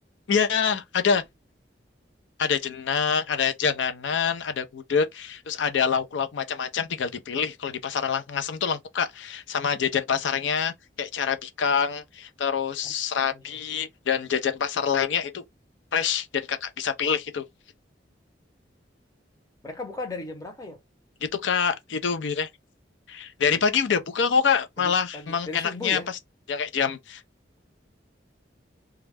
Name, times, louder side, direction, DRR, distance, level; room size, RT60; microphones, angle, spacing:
voice 1, 0.3-1.2 2.4-15.4 15.9-17.4 21.2-22.5 23.1-26.0 26.5-27.2, left 6 dB, 75° left, 0.5 m, -26 dB
voice 2, 19.6-20.8 24.8-26.1, left 2 dB, 20° left, 0.7 m, -36 dB
2.3 x 2.1 x 3.3 m
head